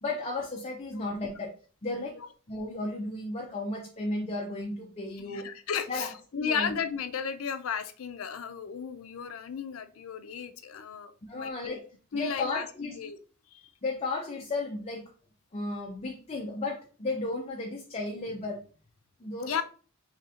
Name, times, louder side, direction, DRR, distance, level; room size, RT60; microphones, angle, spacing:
voice 1, 0.0-1.5 1.8-2.2 2.5-5.5 5.9-6.1 6.3-6.7 11.3-11.8 12.1-12.9 13.8-15.0 15.5-18.6 19.2-19.6, left 2 dB, 30° left, 0 dB, 0.6 m, -34 dB
voice 2, 5.2-11.8 12.1-13.2 13.5-13.7 19.5-19.6, left 7 dB, 90° left, 10 dB, 0.5 m, -34 dB
3.2 x 2.8 x 3.7 m, 0.39 s
head